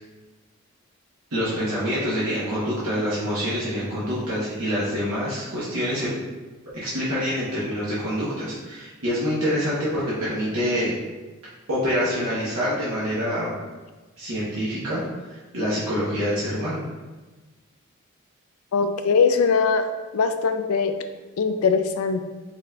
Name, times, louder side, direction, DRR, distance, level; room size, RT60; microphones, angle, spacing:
voice 1, 1.3-6.1 6.8-10.9 11.7-13.5 14.2-15.0 15.3-16.8, equal, 70° right, -9 dB, 1.0 m, -26 dB
voice 2, 18.7-19.8 20.1-21.0 21.4-22.2, left 5 dB, 90° left, 8 dB, 0.4 m, -21 dB
5.0 x 3.7 x 2.3 m, 1.2 s
head